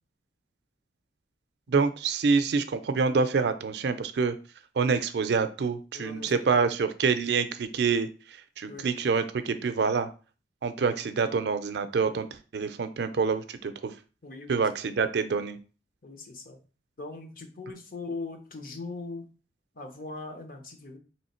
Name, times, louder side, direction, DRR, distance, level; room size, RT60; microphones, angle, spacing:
voice 1, 1.7-4.4 4.8-8.1 8.6-10.1 10.6-12.3 12.5-13.9 14.5-15.6, right 5 dB, 70° right, 11 dB, 0.4 m, -26 dB
voice 2, 5.9-6.7 8.7-8.9 10.8-11.0 14.2-14.6 16.0-16.6 17.0-19.2 19.7-21.0, left 3 dB, 50° left, 4 dB, 0.8 m, -40 dB
3.1 x 3.1 x 4.3 m, 0.36 s
head